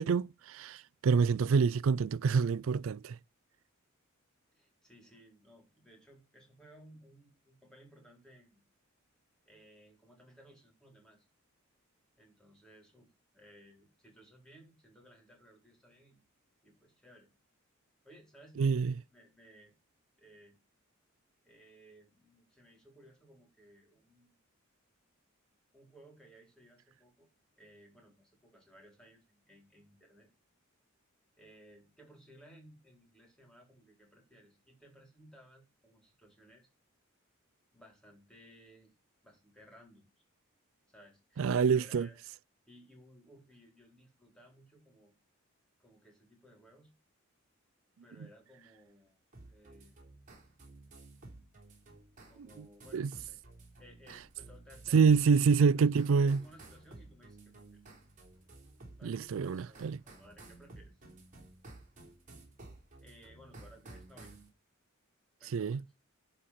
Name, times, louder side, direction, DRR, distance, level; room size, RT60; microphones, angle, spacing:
voice 1, 0.0-3.2 18.6-18.9 41.4-42.1 52.9-53.1 54.9-56.4 59.0-60.0 65.5-65.8, right 5 dB, 65° right, 0.4 m, -27 dB
voice 2, 4.5-8.6 9.5-11.3 12.2-16.2 16.6-17.3 18.0-18.7 19.1-19.7 20.2-20.6 21.4-24.3 25.7-27.3 27.6-30.3 31.4-36.7 37.7-38.9 39.2-40.1 40.9-42.2 42.7-45.1 45.8-46.9 48.0-49.2 49.5-49.9 52.2-53.4 53.8-55.4 55.7-57.8 59.0-61.0 63.0-64.4 65.4-65.9, equal, 5° left, 3.8 m, -59 dB
sound 1, 49.3-64.5, right 2 dB, 40° right, 3.6 m, -54 dB
11.5 x 4.3 x 5.7 m
head